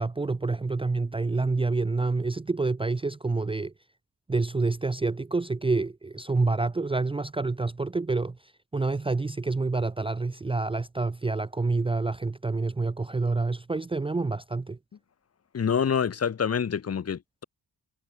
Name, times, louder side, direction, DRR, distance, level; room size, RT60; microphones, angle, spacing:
voice 1, 0.0-3.7 4.3-14.8, right 3 dB, 15° right, 0.7 m, -28 dB
voice 2, 15.5-17.4, left 7 dB, 40° left, 1.5 m, -27 dB
wide cardioid pair, 155°, 39 cm